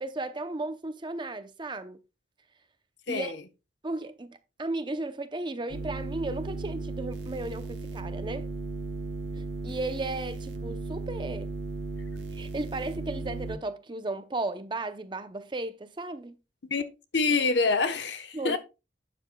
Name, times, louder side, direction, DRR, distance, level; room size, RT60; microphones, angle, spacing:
voice 1, 0.0-2.0 3.1-3.3 3.8-8.5 9.4-11.5 12.3-16.4 18.3-18.6, right 2 dB, 25° right, 0.7 m, -35 dB
sound 1, 5.7-13.6, right 3 dB, 65° right, 1.2 m, -36 dB
voice 2, 17.1-18.6, left 4 dB, 70° left, 1.1 m, -26 dB
12.0 x 8.7 x 2.3 m
head